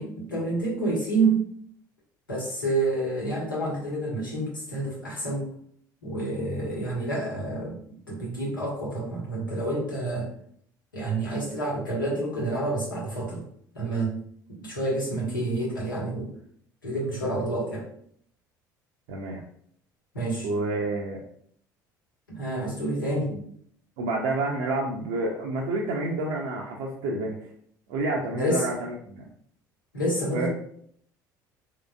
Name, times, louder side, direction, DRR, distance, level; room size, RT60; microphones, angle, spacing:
voice 1, 0.0-1.4 2.3-5.4 6.0-7.8 8.1-10.3 10.9-13.4 13.7-14.2 14.6-16.3 16.8-17.8 20.1-20.5 22.3-23.3 28.3-28.6 29.9-30.5, right 2 dB, 85° left, -4 dB, 1.2 m, -28 dB
voice 2, 19.1-19.4 20.4-21.2 23.3-23.4 24.0-27.4 27.9-29.2 30.3-30.5, right 2 dB, 65° right, -1 dB, 0.6 m, -29 dB
3.7 x 3.2 x 2.3 m, 0.64 s
figure-of-eight pair, 60°, 11 cm